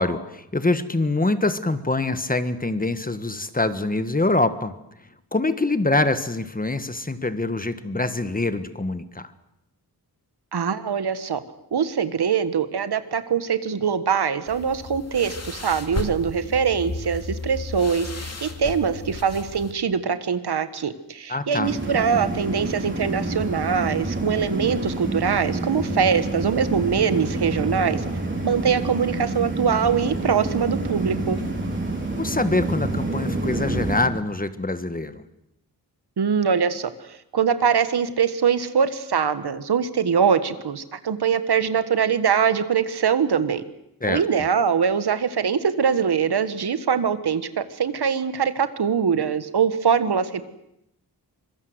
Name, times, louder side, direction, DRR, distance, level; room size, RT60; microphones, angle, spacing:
voice 1, 0.0-4.7 5.3-9.3 21.3-21.8 32.2-35.2 44.0-44.5, left 2 dB, 20° left, 11 dB, 1.5 m, -24 dB
voice 2, 10.5-11.4 11.7-28.0 28.4-31.4 36.2-36.9 37.3-43.6 44.1-50.5, right 7 dB, 75° right, 12 dB, 1.6 m, -23 dB
sound 1, 14.5-19.7, left 3 dB, 40° left, 2.6 m, -34 dB
sound 2, 21.6-34.0, right 2 dB, 30° right, 4.9 m, -28 dB
25.5 x 22.5 x 8.0 m, 0.81 s
wide cardioid pair, 110°, 39 cm